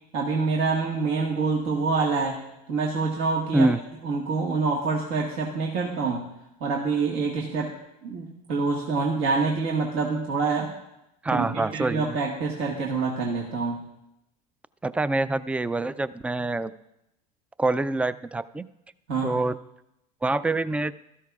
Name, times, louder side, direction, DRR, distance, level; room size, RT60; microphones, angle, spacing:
voice 1, 0.1-2.4 2.7-3.7 4.0-6.2 6.6-7.7 8.0-10.7 11.3-13.8 19.1-19.4, right 4 dB, 65° right, -2 dB, 1.6 m, -26 dB
voice 2, 11.2-12.2 14.8-16.7 17.6-18.7 19.2-19.6 20.2-20.9, right 2 dB, 5° right, 16 dB, 0.3 m, -25 dB
15.5 x 13.0 x 2.4 m, 0.86 s
hypercardioid pair, 95°, 21 cm